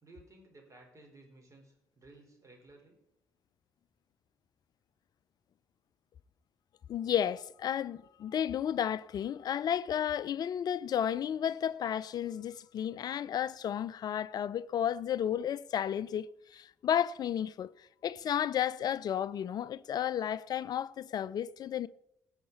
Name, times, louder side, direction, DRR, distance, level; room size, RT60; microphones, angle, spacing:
voice 1, 0.0-3.0, right 2 dB, 35° right, 4.4 m, -57 dB
voice 2, 6.9-17.7 18.0-21.9, left 9 dB, 45° left, 0.5 m, -32 dB
17.5 x 8.9 x 4.1 m
figure-of-eight pair, 40°, 9 cm